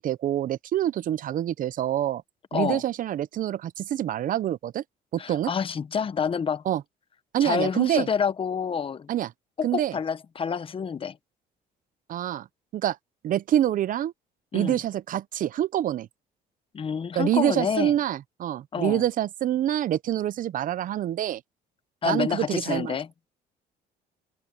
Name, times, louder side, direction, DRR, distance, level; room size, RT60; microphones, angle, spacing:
voice 1, 0.0-2.2 2.5-4.8 5.1-5.5 6.7-6.8 7.3-8.1 9.1-9.3 9.6-9.9 12.1-12.5 12.7-13.0 13.2-14.1 14.5-16.1 17.1-21.4 22.0-23.0, right 11 dB, 55° right, 0.7 m, -26 dB
voice 2, 2.5-2.8 5.2-6.6 7.4-9.1 9.6-11.2 14.5-14.8 16.7-17.9 18.7-19.0 22.0-23.1, left 6 dB, 30° left, 1.0 m, -28 dB
open air
cardioid pair, 110°, 17 cm